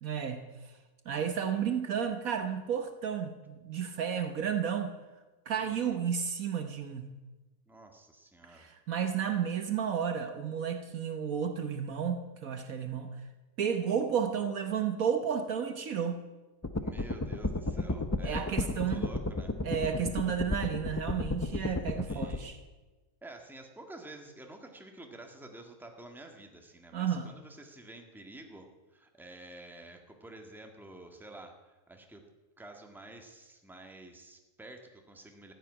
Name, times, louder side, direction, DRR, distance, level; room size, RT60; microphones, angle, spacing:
voice 1, 0.0-0.4 1.1-5.0 5.5-7.1 8.5-13.2 13.6-16.2 18.2-19.0 19.6-22.6 26.9-27.3, right 7 dB, 65° right, 8 dB, 1.4 m, -32 dB
voice 2, 5.6-6.0 7.7-8.7 16.8-19.5 22.1-22.5 23.2-28.7 28.9-32.2 32.6-35.5, right 2 dB, ahead, 3 dB, 1.6 m, -50 dB
sound 1, 16.6-22.4, left 2 dB, 25° left, 0.4 m, -33 dB
14.5 x 9.0 x 9.6 m, 1.2 s
omnidirectional pair, 1.7 m